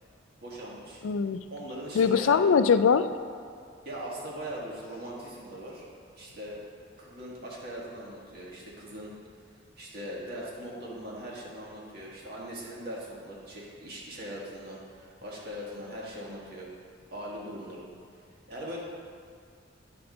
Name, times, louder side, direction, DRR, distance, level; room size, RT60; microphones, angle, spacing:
voice 1, 0.4-1.0 1.5-2.3 3.9-5.9 6.1-6.6 7.0-9.1 9.8-16.7 17.1-17.9 18.5-18.8, equal, 50° right, -4 dB, 1.8 m, -40 dB
voice 2, 1.0-1.4 1.9-3.1, left 6 dB, 85° left, 11 dB, 0.4 m, -22 dB
10.5 x 4.4 x 5.2 m, 2.3 s
head